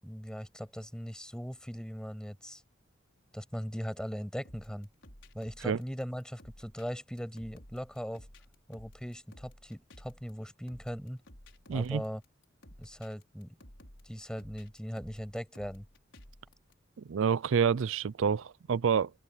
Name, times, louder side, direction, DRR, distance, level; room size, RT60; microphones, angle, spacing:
voice 1, 0.0-2.6 3.3-4.9 5.3-8.3 8.7-11.2 11.7-12.2 12.8-13.6 14.0-15.8, equal, 5° left, 6.7 m, -39 dB
sound 1, 4.4-16.7, left 1 dB, 70° left, 5.8 m, -55 dB
voice 2, 11.7-12.0 17.1-19.1, right 6 dB, 75° right, 0.4 m, -28 dB
open air
head